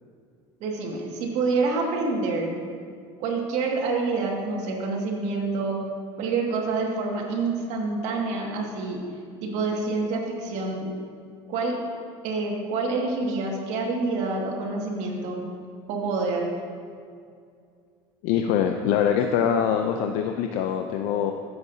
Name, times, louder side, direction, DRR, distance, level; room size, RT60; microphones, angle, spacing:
voice 1, 0.6-2.6 3.2-5.8 6.2-9.0 9.4-10.9 11.5-11.8 12.2-15.4 15.9-16.5, right 3 dB, 65° right, -1 dB, 2.1 m, -27 dB
voice 2, 18.2-21.3, left 8 dB, 70° left, 5 dB, 0.6 m, -23 dB
15.0 x 7.8 x 2.8 m, 2.2 s
supercardioid pair, 95°, 13 cm